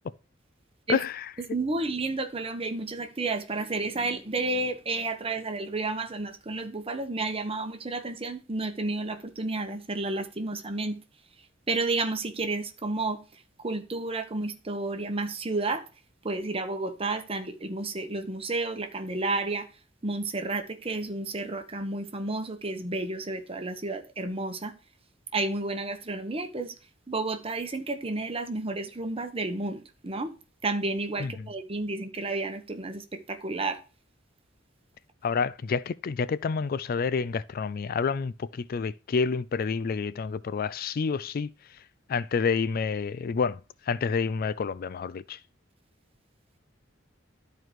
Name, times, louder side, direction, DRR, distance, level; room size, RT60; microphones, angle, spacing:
voice 1, 0.9-1.3 31.2-31.5 35.2-41.5 42.1-43.6 43.9-45.4, left 5 dB, 50° left, 0.4 m, -28 dB
voice 2, 1.5-11.0 11.7-13.2 13.6-15.9 16.2-19.7 20.0-24.7 25.3-26.8 27.1-30.3 30.6-33.8, right 2 dB, 30° right, 1.1 m, -31 dB
12.5 x 4.6 x 3.1 m
head